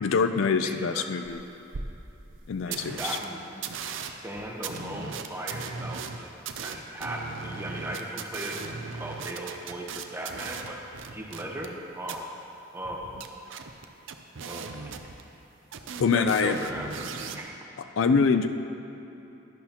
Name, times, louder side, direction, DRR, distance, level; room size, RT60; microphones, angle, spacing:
voice 1, 0.0-1.4 2.5-3.2 16.0-16.6 17.9-18.5, left 5 dB, 75° left, 9 dB, 0.4 m, -24 dB
voice 2, 0.6-1.0 2.7-3.7 4.0-8.6 8.9-10.8 11.1-12.4 12.7-13.1 14.4-14.9 16.1-17.5, right 1 dB, 10° right, -1 dB, 0.9 m, -37 dB
sound 1, 1.2-1.3 1.7-1.8 2.3-2.4 2.7-3.2 3.6-11.8 12.0-12.2 12.8-15.5 15.7-17.4, right 5 dB, 70° right, 0.5 m, -38 dB
11.5 x 11.0 x 2.9 m, 2.9 s
head